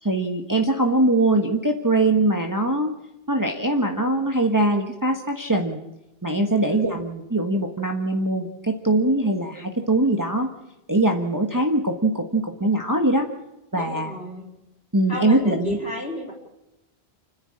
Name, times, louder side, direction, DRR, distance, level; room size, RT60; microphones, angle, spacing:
voice 1, 0.0-2.9 3.3-5.8 6.2-10.5 10.9-13.3 13.7-14.1 14.9-15.8, right 2 dB, 20° right, 2 dB, 1.4 m, -22 dB
voice 2, 6.5-7.0 13.8-14.5 15.1-16.3, equal, 80° left, -2 dB, 4.3 m, -32 dB
29.5 x 10.5 x 8.8 m, 0.93 s
omnidirectional pair, 1.1 m